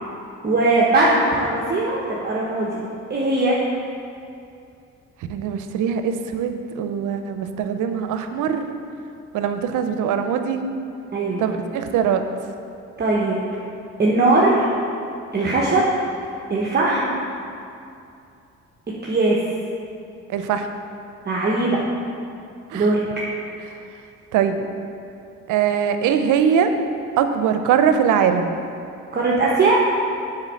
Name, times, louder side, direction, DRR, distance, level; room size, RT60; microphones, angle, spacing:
voice 1, 0.4-2.8 3.1-3.6 11.1-11.5 13.0-13.4 14.0-14.7 15.3-15.9 16.5-17.1 19.1-19.4 21.3-21.8 22.7-23.0 29.1-29.7, right 2 dB, 35° right, -4 dB, 1.0 m, -19 dB
voice 2, 5.3-8.7 9.3-10.6 11.4-12.2 20.3-20.7 22.7-22.9 24.3-24.7 25.5-26.7 27.2-28.6, right 8 dB, 85° right, 8 dB, 0.6 m, -21 dB
7.4 x 4.4 x 6.3 m, 2.6 s
cardioid pair, 90°, 30 cm